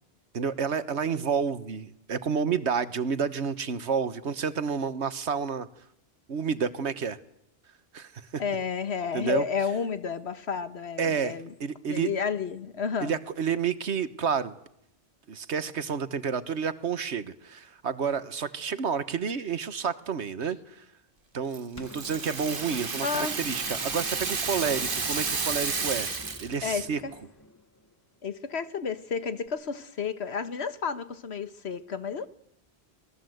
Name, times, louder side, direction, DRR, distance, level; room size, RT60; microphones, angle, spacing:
voice 1, 0.3-5.7 6.3-7.2 7.9-8.4 9.1-9.4 11.0-12.1 13.0-14.6 15.3-20.8 21.3-26.1 26.4-27.0, right 6 dB, 85° right, 1.5 m, -30 dB
voice 2, 8.4-11.5 11.9-13.1 23.0-23.4 26.6-27.1 28.2-32.3, left 5 dB, 75° left, 1.6 m, -31 dB
Rattle (instrument), 21.5-26.6, right 4 dB, 55° right, 1.6 m, -31 dB
sound 1, 21.7-27.9 29.5-29.6, left 1 dB, 15° left, 1.2 m, -46 dB
26.5 x 20.0 x 7.9 m
omnidirectional pair, 1.1 m